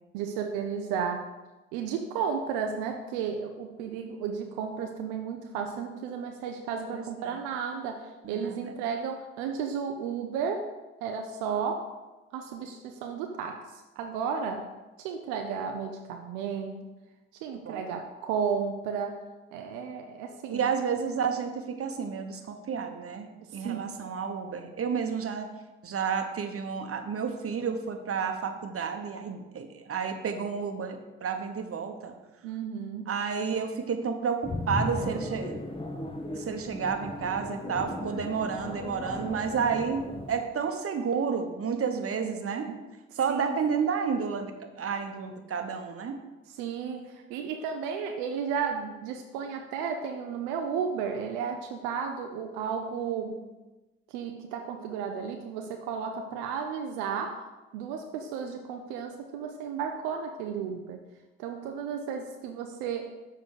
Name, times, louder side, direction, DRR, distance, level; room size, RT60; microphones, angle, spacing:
voice 1, 0.1-1.3 1.7-10.7 11.0-11.9 12.3-14.7 15.0-16.8 17.4-19.2 19.5-20.7 23.4-23.9 32.4-33.1 41.9-42.8 43.3-43.8 46.5-53.4 54.1-57.4 57.7-61.0 61.4-63.1, right 6 dB, 85° right, 4 dB, 0.6 m, -33 dB
voice 2, 6.9-7.4 8.2-8.7 17.6-17.8 20.5-25.5 25.8-32.1 33.1-35.6 36.3-42.7 43.1-46.2, right 6 dB, 50° right, 6 dB, 1.1 m, -31 dB
sound 1, 34.4-40.4, left 1 dB, 20° left, 1.3 m, -36 dB
7.1 x 4.0 x 6.4 m, 1.1 s
hypercardioid pair, 45°, 30 cm